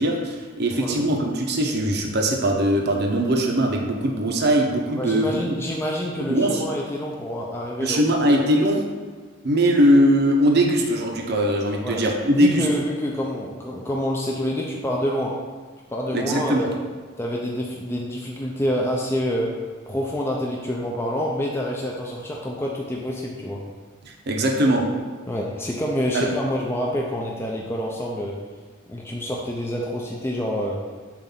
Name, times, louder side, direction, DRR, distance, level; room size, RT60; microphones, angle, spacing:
voice 1, 0.0-5.4 6.3-6.6 7.8-8.8 9.4-12.7 16.1-16.7 24.1-24.9 26.1-26.3, equal, 55° right, 1 dB, 0.8 m, -20 dB
voice 2, 5.0-8.2 11.8-12.0 12.3-15.3 15.9-16.7 17.2-19.5 19.9-23.6 25.3-28.3 28.9-30.8, equal, 10° left, -2 dB, 0.5 m, -27 dB
7.3 x 2.6 x 5.6 m, 1.5 s
head